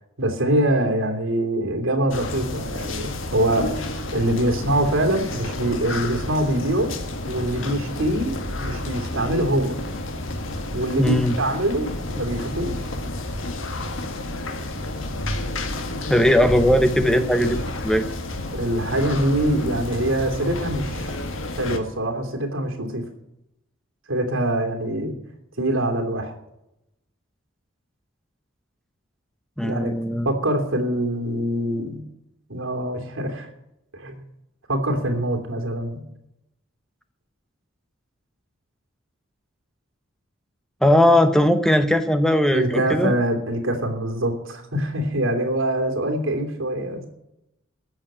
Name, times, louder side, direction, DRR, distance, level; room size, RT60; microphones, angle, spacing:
voice 1, 0.2-6.9 7.2-9.8 10.7-12.8 18.5-21.1 21.6-23.0 24.1-25.1 25.6-26.3 29.6-32.0 32.5-33.5 33.9-34.2 34.7-36.0 42.5-47.1, right 1 dB, 80° right, 3 dB, 2.9 m, -24 dB
sound 1, 2.1-21.8, left 1 dB, 80° left, 1.7 m, -30 dB
voice 2, 11.0-11.4 16.1-18.0 29.6-30.3 40.8-43.1, left 1 dB, 5° left, 9 dB, 0.7 m, -19 dB
14.5 x 7.0 x 8.9 m, 0.85 s
head